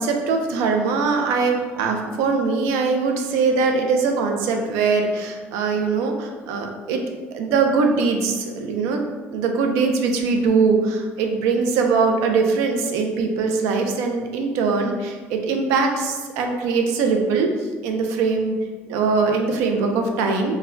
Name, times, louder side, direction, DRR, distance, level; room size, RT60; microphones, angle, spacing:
voice 1, 0.0-7.0 7.3-9.1 9.3-17.5 17.8-18.5 18.9-20.6, right 4 dB, 75° right, 3 dB, 0.4 m, -21 dB
2.1 x 2.1 x 3.6 m, 1.4 s
cardioid pair, 115°, 5 cm